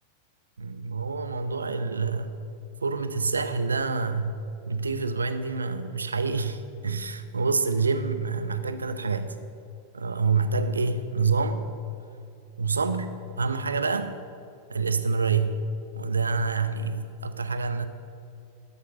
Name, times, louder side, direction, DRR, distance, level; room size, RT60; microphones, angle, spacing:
voice 1, 0.6-2.3 2.8-4.4 4.7-9.3 9.9-11.6 12.6-13.1 13.4-14.1 14.7-15.6 16.0-17.9, right 4 dB, 75° right, 11 dB, 0.7 m, -27 dB
12.5 x 8.5 x 7.4 m, 2.5 s
figure-of-eight pair, 90°, 0 cm